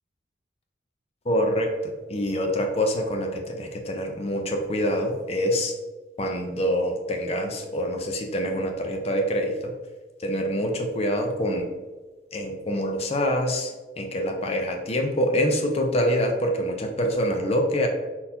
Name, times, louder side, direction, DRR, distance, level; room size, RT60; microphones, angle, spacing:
voice 1, 1.3-5.7 6.2-9.7 10.2-11.7 12.3-13.7 14.0-17.9, equal, 35° left, 3 dB, 0.6 m, -25 dB
4.0 x 4.0 x 2.8 m, 1.3 s
head